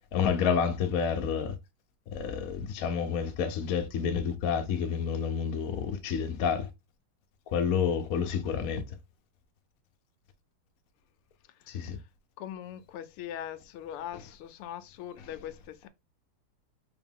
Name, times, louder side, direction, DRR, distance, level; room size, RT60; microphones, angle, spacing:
voice 1, 0.1-1.5 2.1-6.7 7.5-8.8 11.7-12.0 14.1-14.2 15.2-15.3, left 7 dB, 60° left, 0.9 m, -29 dB
voice 2, 12.4-15.9, left 10 dB, 90° left, 1.5 m, -41 dB
5.0 x 2.9 x 3.5 m
omnidirectional pair, 2.3 m